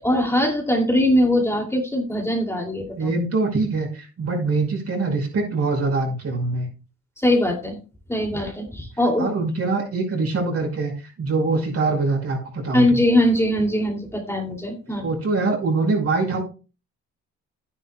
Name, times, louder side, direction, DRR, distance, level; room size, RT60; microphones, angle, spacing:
voice 1, 0.0-3.1 7.2-7.8 8.1-9.3 12.7-15.1, left 1 dB, 10° left, 0 dB, 2.6 m, -21 dB
voice 2, 3.0-6.7 9.2-13.0 15.0-16.4, right 3 dB, 50° right, 1 dB, 5.6 m, -23 dB
12.0 x 10.0 x 2.3 m, 0.32 s
cardioid pair, 90°, 30 cm